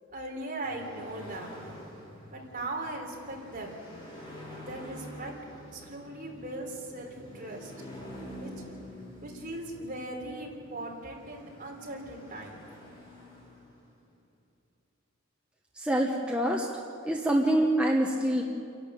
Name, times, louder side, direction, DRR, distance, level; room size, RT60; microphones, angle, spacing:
voice 1, 0.1-1.6 2.3-3.8 4.6-5.3 5.7-7.7 8.4-8.5 9.2-12.6, right 2 dB, 40° right, -1 dB, 3.8 m, -39 dB
sound 1, 0.6-14.1, equal, 25° left, 5.8 m, -47 dB
voice 2, 15.7-16.7 17.1-18.4, right 1 dB, 5° right, -1 dB, 1.2 m, -25 dB
28.5 x 11.5 x 8.2 m, 2.5 s
head